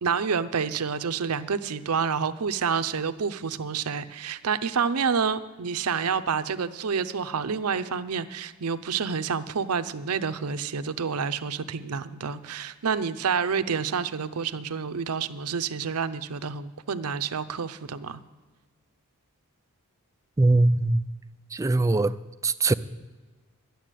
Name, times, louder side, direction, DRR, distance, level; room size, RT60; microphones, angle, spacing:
voice 1, 0.0-18.2, right 6 dB, 85° right, 0.6 m, -28 dB
voice 2, 20.4-21.0 21.5-22.1 22.4-22.7, right 2 dB, 15° right, 0.3 m, -21 dB
12.0 x 7.0 x 9.1 m
head